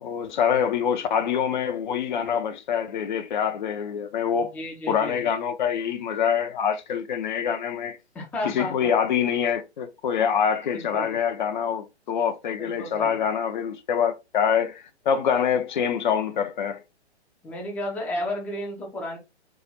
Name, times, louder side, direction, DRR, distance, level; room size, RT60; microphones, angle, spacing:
voice 1, 0.0-4.5 4.9-8.0 8.5-16.8, left 7 dB, 45° left, 0.6 m, -25 dB
voice 2, 4.3-5.3 8.1-8.9 10.7-11.2 12.6-13.2 17.4-19.2, left 1 dB, 5° left, 0.5 m, -33 dB
4.7 x 2.4 x 3.9 m
figure-of-eight pair, 125°, 34 cm